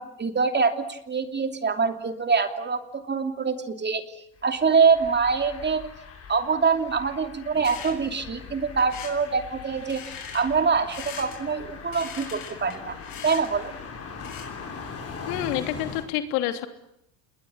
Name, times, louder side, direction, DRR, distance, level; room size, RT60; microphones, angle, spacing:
voice 1, 0.0-4.0 4.4-5.8 6.3-13.0 13.2-13.7, right 5 dB, 25° right, 7 dB, 2.9 m, -24 dB
sound 1, 4.4-16.0, left 5 dB, 30° left, 6.9 m, -41 dB
sound 2, 7.5-14.6, left 7 dB, 50° left, 7.3 m, -42 dB
voice 2, 15.3-16.7, left 12 dB, 85° left, 7 dB, 3.2 m, -28 dB
28.0 x 21.0 x 10.0 m, 0.77 s
supercardioid pair, 110°, 44 cm